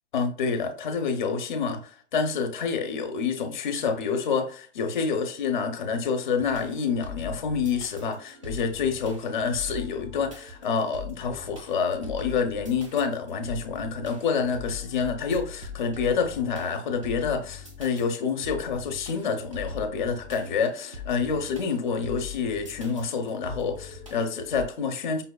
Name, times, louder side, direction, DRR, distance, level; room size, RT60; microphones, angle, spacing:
voice 1, 0.1-25.2, left 5 dB, 45° left, 0.5 m, -28 dB
sound 1, 6.3-24.6, left 5 dB, 30° right, 0.4 m, -42 dB
5.2 x 2.2 x 2.3 m
hypercardioid pair, 170°, 35 cm